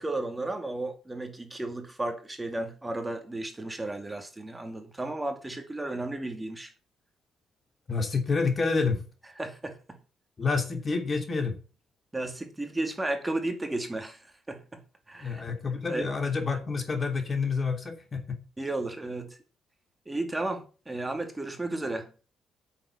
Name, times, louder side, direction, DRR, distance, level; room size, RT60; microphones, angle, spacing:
voice 1, 0.0-6.7 9.4-9.8 12.1-14.8 15.1-15.4 15.9-16.1 18.6-19.4 20.1-22.1, right 2 dB, 15° right, 2.4 m, -33 dB
voice 2, 7.9-9.0 10.4-11.6 15.2-18.4, left 4 dB, 35° left, 2.9 m, -28 dB
8.8 x 7.3 x 7.1 m
cardioid pair, 90°, 0 cm